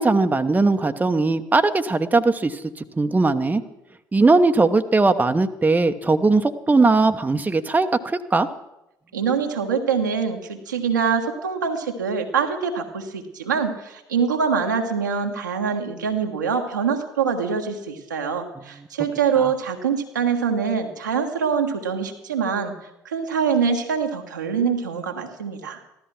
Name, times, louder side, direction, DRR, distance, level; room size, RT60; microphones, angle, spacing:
voice 1, 0.0-2.6 3.0-3.6 4.1-8.5, right 3 dB, 15° right, 8 dB, 1.0 m, -19 dB
voice 2, 9.1-22.8 23.0-25.8, right 6 dB, 80° right, 3 dB, 1.3 m, -24 dB
15.0 x 13.0 x 6.1 m, 0.90 s
figure-of-eight pair, 55°, 10 cm